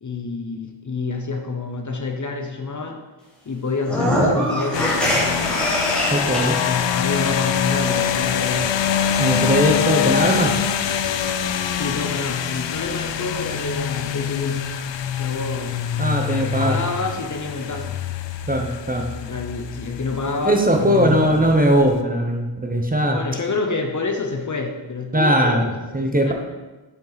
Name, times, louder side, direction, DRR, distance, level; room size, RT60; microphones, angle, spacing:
voice 1, 0.0-3.0 3.5-5.2 6.6-8.7 9.9-10.4 11.7-14.6 15.2-15.8 16.6-18.0 19.2-21.5 23.1-25.9 26.3-26.4, left 3 dB, 40° left, 4 dB, 0.8 m, -27 dB
sound 1, 3.8-6.8, equal, ahead, 1.6 m, -23 dB
sound 2, 4.7-22.0, left 8 dB, 85° left, 0.5 m, -25 dB
voice 2, 6.1-6.6 9.2-10.5 16.0-16.8 18.5-19.1 20.4-23.2 25.1-26.3, right 1 dB, 20° right, 2 dB, 0.9 m, -19 dB
7.2 x 5.3 x 4.1 m, 1.2 s
wide cardioid pair, 85°, 44 cm